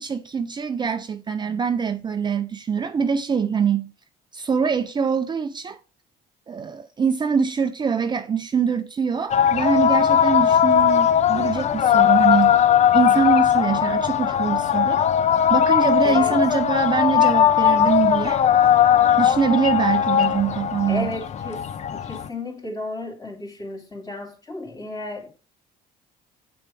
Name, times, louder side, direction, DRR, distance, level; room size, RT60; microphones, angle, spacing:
voice 1, 0.0-3.9 4.3-5.8 6.5-12.6 12.9-15.0 15.5-18.4 19.2-21.1, right 6 dB, 25° right, 0.5 m, -24 dB
sound 1, 9.3-22.3, left 9 dB, 45° left, 0.5 m, -19 dB
voice 2, 16.0-16.4 20.9-21.7 21.9-25.3, left 2 dB, 20° left, 2.9 m, -33 dB
7.8 x 6.7 x 4.7 m
cardioid pair, 110°, 17 cm